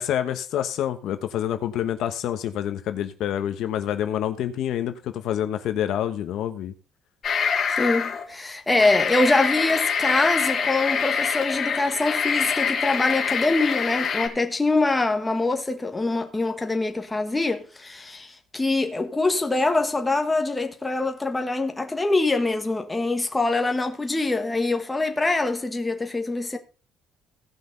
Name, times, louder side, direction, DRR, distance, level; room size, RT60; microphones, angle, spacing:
voice 1, 0.0-6.7, left 10 dB, 60° left, 1.2 m, -27 dB
sound 1, 7.2-8.2 8.7-14.3, left 6 dB, 35° left, 2.3 m, -25 dB
voice 2, 7.8-26.6, left 2 dB, 10° left, 1.3 m, -24 dB
17.5 x 6.0 x 4.0 m
cardioid pair, 160°, 0 cm